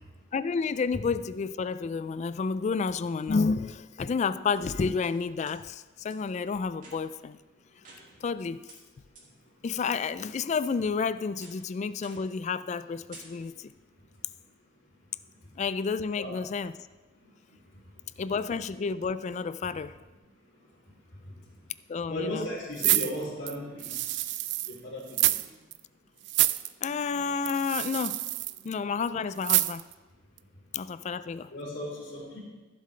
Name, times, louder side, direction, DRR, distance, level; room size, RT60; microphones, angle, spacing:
voice 1, 0.3-7.4 8.2-8.6 9.6-13.7 15.6-16.7 18.2-19.9 21.9-22.5 26.8-28.2 28.6-29.8 30.7-31.5, left 5 dB, 35° left, 0.3 m, -30 dB
sound 1, 5.0-5.6 6.1-6.2 6.7-7.3 7.8-8.4 8.7-8.8 9.2-9.3 9.7-10.3 10.6-11.0 11.4-11.7 12.0-12.4 12.7-12.8 13.1-13.7, right 3 dB, 45° right, 2.5 m, -52 dB
voice 2, 22.1-24.2 24.7-25.3 31.5-32.4, left 1 dB, 75° left, 3.1 m, -36 dB
sound 2, 22.8-24.7 25.1-25.5 25.7-25.8 26.2-26.7 27.4-28.6 29.4-29.9 30.4-30.5, right 17 dB, 65° right, 0.3 m, -27 dB
15.0 x 7.6 x 3.3 m
head